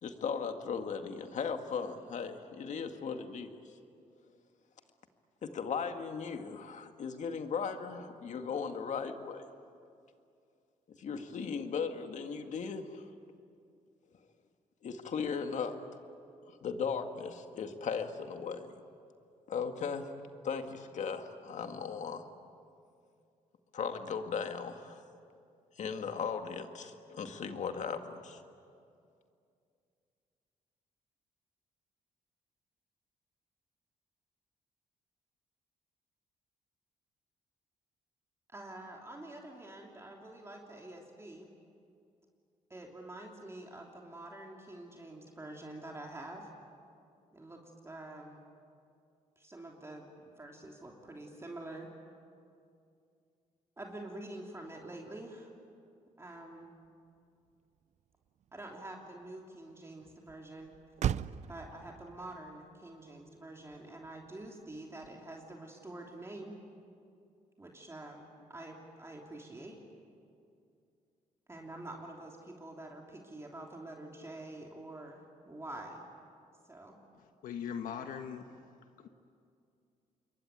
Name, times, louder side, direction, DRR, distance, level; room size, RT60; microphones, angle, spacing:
voice 1, 0.0-3.6 5.4-9.4 10.9-13.0 14.8-15.8 16.5-18.7 19.5-20.1 20.4-22.3 23.7-25.0 25.8-28.4, left 6 dB, 60° left, 6 dB, 2.1 m, -37 dB
voice 2, 38.5-41.5 42.7-46.5 47.3-48.4 49.4-51.9 53.8-55.5 56.2-56.7 58.5-60.7 61.5-66.6 67.6-69.8 71.5-76.0 76.7-77.0, right 1 dB, 20° right, 0 dB, 3.2 m, -47 dB
Motor vehicle (road), 56.8-65.5, right 10 dB, 60° right, 0.6 m, -42 dB
voice 3, 77.4-78.4 79.0-79.1, left 8 dB, 85° left, 6 dB, 1.3 m, -39 dB
27.0 x 22.5 x 9.4 m, 2.4 s
cardioid pair, 90°, 14 cm